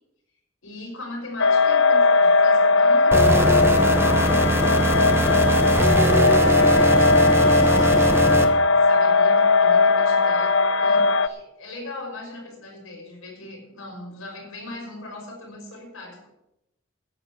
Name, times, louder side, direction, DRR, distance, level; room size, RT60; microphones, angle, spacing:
voice 1, 0.6-16.3, left 2 dB, 90° left, 0 dB, 5.8 m, -40 dB
sound 1, 1.4-11.3, left 3 dB, 65° left, 0.7 m, -18 dB
sound 2, 3.1-8.4, right 1 dB, 10° right, 1.1 m, -21 dB
11.5 x 9.0 x 8.3 m, 0.87 s
head